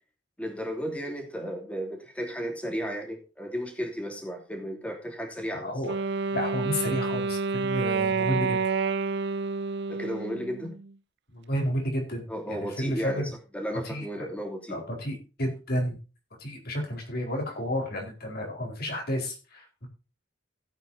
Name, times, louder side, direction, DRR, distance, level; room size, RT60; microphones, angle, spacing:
voice 1, 0.4-5.7 9.9-10.8 12.3-14.8, equal, 5° left, 3 dB, 3.0 m, -34 dB
voice 2, 5.5-6.0 6.3-8.6 11.3-13.3 13.8-14.3 14.7-16.0 16.4-19.9, equal, 55° left, 1 dB, 4.4 m, -31 dB
Wind instrument woodwind instrument, 5.8-10.9, right 4 dB, 65° right, 0.5 m, -29 dB
16.5 x 9.0 x 2.7 m, 0.32 s
head